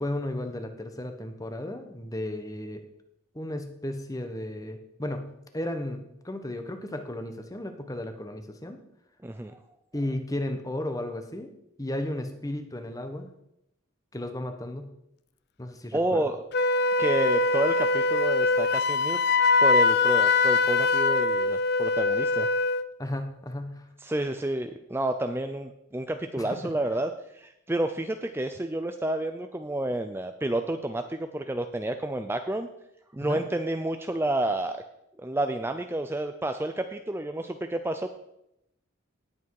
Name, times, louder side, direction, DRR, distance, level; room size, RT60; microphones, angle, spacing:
voice 1, 0.0-2.8 3.3-5.3 5.5-8.8 9.9-11.5 11.8-13.3 14.1-14.9 15.6-16.2 23.0-23.8 26.4-26.7 33.2-33.4, left 1 dB, 15° left, 7 dB, 1.2 m, -34 dB
voice 2, 9.2-9.6 15.9-16.4 17.0-22.5 24.0-32.7 33.1-34.8 35.2-38.1, right 1 dB, 10° right, 7 dB, 0.5 m, -30 dB
Wind instrument woodwind instrument, 16.5-22.9, left 3 dB, 50° left, 0.5 m, -23 dB
18.0 x 8.3 x 4.8 m, 0.83 s
head